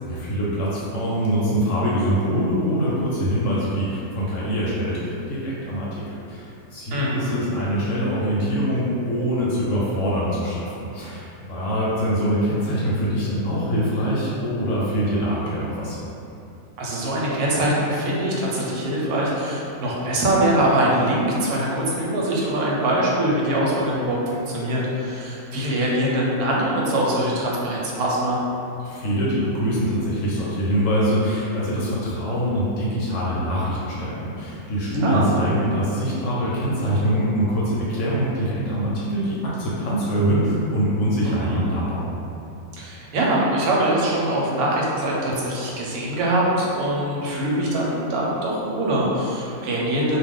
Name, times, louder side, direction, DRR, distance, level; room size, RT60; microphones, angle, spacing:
voice 1, 0.0-6.0 6.3-16.0 28.8-42.1, equal, 65° left, -7 dB, 0.9 m, -24 dB
voice 2, 6.9-7.4 16.8-28.4 35.0-35.3 41.2-41.6 42.7-50.2, right 1 dB, 85° right, -4 dB, 1.1 m, -23 dB
2.4 x 2.3 x 3.5 m, 2.7 s
omnidirectional pair, 1.6 m